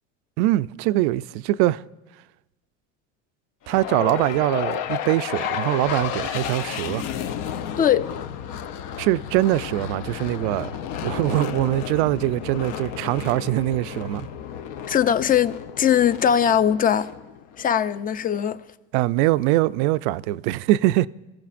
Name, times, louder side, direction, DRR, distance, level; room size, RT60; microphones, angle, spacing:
voice 1, 0.4-1.8 3.7-7.0 9.0-10.7 11.0-14.3 18.9-21.1, right 16 dB, 75° right, 0.5 m, -22 dB
sound 1, 3.7-17.9, left 9 dB, 65° left, 0.8 m, -32 dB
voice 2, 7.8-8.1 14.9-17.1 17.6-18.6, left 9 dB, 25° left, 0.5 m, -20 dB
29.0 x 14.5 x 2.5 m
supercardioid pair, 115°, 35 cm